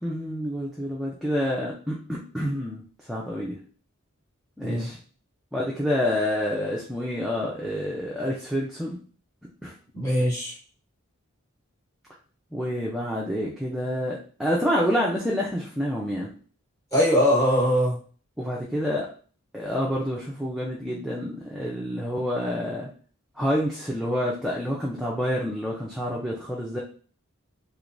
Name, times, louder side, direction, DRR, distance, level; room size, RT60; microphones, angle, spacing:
voice 1, 0.0-3.6 4.6-5.0 5.5-9.0 9.6-9.7 12.5-16.3 18.4-19.1 19.5-22.9 23.4-26.8, equal, ahead, -4 dB, 0.4 m, -28 dB
voice 2, 9.9-10.5 16.9-18.0, equal, 15° left, -4 dB, 1.1 m, -21 dB
3.2 x 3.0 x 2.5 m, 0.41 s
head